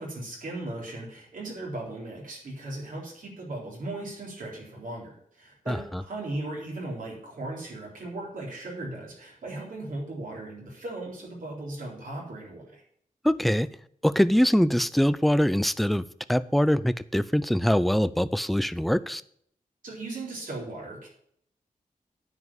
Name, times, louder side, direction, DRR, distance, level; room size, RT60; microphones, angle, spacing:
voice 1, 0.0-12.8 19.8-21.1, right 2 dB, 75° right, -3 dB, 4.0 m, -37 dB
voice 2, 5.7-6.0 13.2-13.7 14.0-19.2, equal, ahead, 15 dB, 0.3 m, -23 dB
9.5 x 5.2 x 7.4 m, 0.67 s
wide cardioid pair, 130°, 14 cm